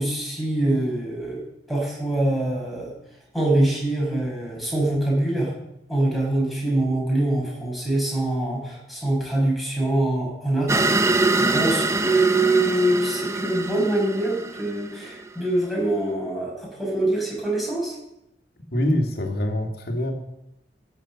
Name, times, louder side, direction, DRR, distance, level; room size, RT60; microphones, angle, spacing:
voice 1, 0.0-1.4 1.7-2.9 3.3-5.5 5.9-10.8 11.3-17.9, right 1 dB, ahead, -4 dB, 6.0 m, -24 dB
sound 1, 10.7-15.3, right 2 dB, 15° right, 0.6 m, -24 dB
voice 2, 18.7-20.1, left 1 dB, 60° left, 3 dB, 2.3 m, -24 dB
16.0 x 7.6 x 7.1 m, 0.86 s
head